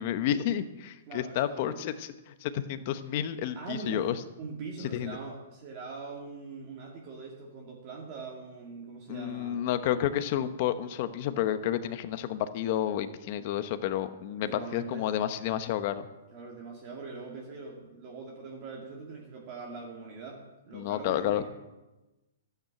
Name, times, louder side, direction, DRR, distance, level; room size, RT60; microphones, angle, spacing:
voice 1, 0.0-4.2 4.9-5.2 9.1-16.1 20.7-21.4, left 11 dB, 40° left, 11 dB, 0.9 m, -30 dB
voice 2, 1.1-1.8 3.6-4.0 4.4-9.7 14.4-15.1 16.3-21.5, right 4 dB, 35° right, -2 dB, 2.3 m, -42 dB
13.5 x 9.2 x 7.7 m, 1.1 s
hypercardioid pair, 160°, 0 cm